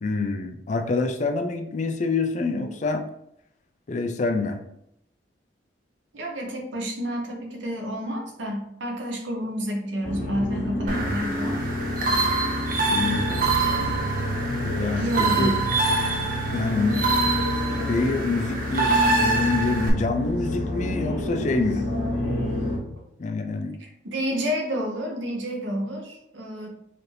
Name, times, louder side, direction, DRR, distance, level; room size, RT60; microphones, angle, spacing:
voice 1, 0.0-3.0 3.9-4.6 12.9-13.5 14.6-15.5 16.5-17.0 17.9-21.9 23.2-23.7, left 3 dB, 40° left, 5 dB, 0.4 m, -26 dB
voice 2, 6.1-11.6 15.0-15.6 23.8-26.7, equal, 85° right, 1 dB, 0.9 m, -29 dB
sound 1, 10.0-22.8, left 1 dB, 75° left, 1.4 m, -28 dB
sound 2, 10.9-19.9, right 3 dB, 50° right, 0.7 m, -26 dB
4.2 x 2.7 x 3.2 m, 0.77 s
head